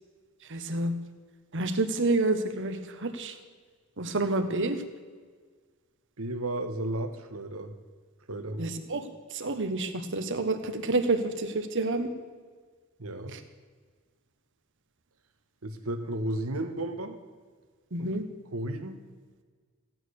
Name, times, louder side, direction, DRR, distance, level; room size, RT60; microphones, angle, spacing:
voice 1, 0.5-0.9 1.5-3.4 4.0-4.8 8.6-12.1 13.3-13.4 17.9-18.2, right 2 dB, 60° right, 7 dB, 1.3 m, -29 dB
voice 2, 6.2-7.7 8.3-8.6 13.0-13.3 15.6-17.2 18.0-18.1 18.5-19.0, right 1 dB, 85° right, 8 dB, 1.4 m, -33 dB
15.5 x 9.2 x 6.5 m, 1.5 s
head